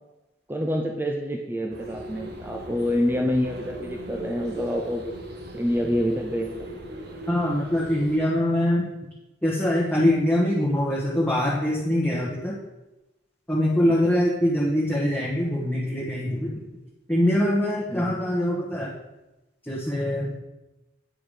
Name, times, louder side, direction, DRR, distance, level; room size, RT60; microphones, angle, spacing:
voice 1, 0.5-5.1 5.5-6.7 17.9-18.2, equal, 10° right, 2 dB, 0.6 m, -27 dB
sound 1, 1.7-8.2, right 1 dB, 65° right, 1.1 m, -39 dB
voice 2, 7.3-8.9 9.4-12.6 13.5-16.6 17.1-18.9 19.7-20.3, left 1 dB, 10° left, -6 dB, 1.3 m, -23 dB
9.0 x 4.7 x 4.9 m, 1.0 s
head